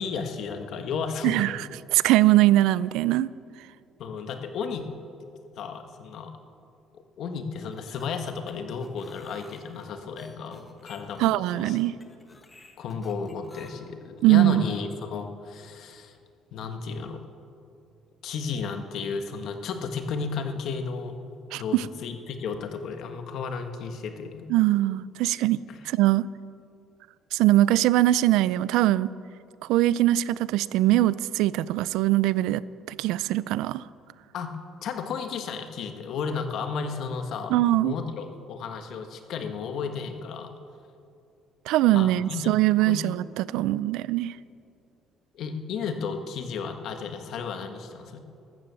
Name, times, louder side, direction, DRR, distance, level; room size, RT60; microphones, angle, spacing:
voice 1, 0.0-1.5 4.0-4.9 5.6-6.3 7.2-12.0 12.8-16.2 16.5-17.2 18.2-21.2 21.5-24.4 25.7-25.8 34.3-40.5 41.9-42.5 42.9-43.0 45.3-48.2, left 5 dB, 60° left, 6 dB, 1.4 m, -33 dB
voice 2, 1.9-3.3 11.2-11.9 14.2-14.6 21.5-21.8 24.5-25.6 25.9-26.3 27.3-29.1 29.7-33.8 37.5-37.9 41.7-44.3, right 15 dB, 85° right, 19 dB, 0.4 m, -22 dB
sound 1, 7.6-13.7, left 2 dB, 15° left, 1.5 m, -51 dB
14.0 x 13.0 x 7.0 m, 2.5 s
cardioid pair, 140°, 0 cm